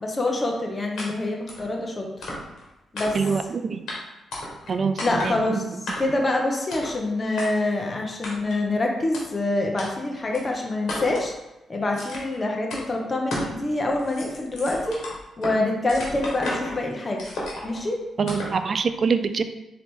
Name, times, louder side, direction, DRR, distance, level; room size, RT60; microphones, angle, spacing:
voice 1, 0.0-2.1 2.9-3.2 5.0-5.6 6.0-11.3 11.7-15.0 15.4-17.3 17.6-18.0, left 2 dB, 35° left, 1 dB, 0.8 m, -26 dB
sound 1, 1.0-1.1 1.5-1.7 2.2-2.6 2.9-3.4 3.9-4.0 4.3-4.7 5.0-5.4 5.9-6.2 6.7-6.9 7.4-7.5 8.2-8.6 9.1-9.2 9.8-9.9 10.3-10.4 10.9-11.3 11.9-12.4 12.7-12.8 13.3-13.5 13.9-15.6 15.9-16.8 17.2-17.8 18.3-18.6, left 1 dB, 70° left, 1.3 m, -33 dB
voice 2, 3.1-3.8 4.7-5.7 18.2-19.4, right 5 dB, 55° right, 10 dB, 0.3 m, -25 dB
3.9 x 2.9 x 3.6 m, 0.97 s
supercardioid pair, 50°, 0 cm